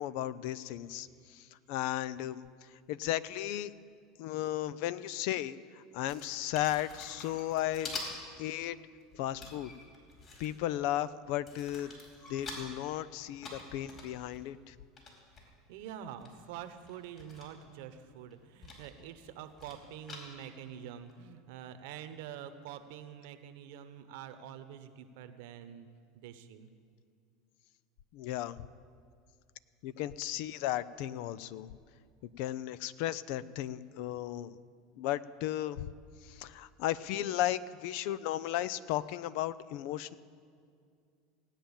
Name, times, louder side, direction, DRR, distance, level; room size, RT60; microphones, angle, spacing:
voice 1, 0.0-2.4 2.9-3.7 4.2-8.0 8.4-8.8 9.1-9.7 10.4-11.9 12.3-14.7 28.1-28.7 29.8-31.7 32.4-34.6 35.0-35.9 36.2-40.1, left 13 dB, 65° left, 17 dB, 0.5 m, -35 dB
sound 1, 6.0-8.4 8.7-10.8 11.3-12.7 13.1-15.4 15.9-16.0 16.2-17.8 18.0-18.9 19.2-20.6 21.1-21.2, left 3 dB, 40° left, 4.6 m, -46 dB
voice 2, 15.7-25.9 26.1-26.7, right 9 dB, 70° right, 10 dB, 1.1 m, -46 dB
17.0 x 9.0 x 7.2 m, 2.2 s
supercardioid pair, 105°, 0 cm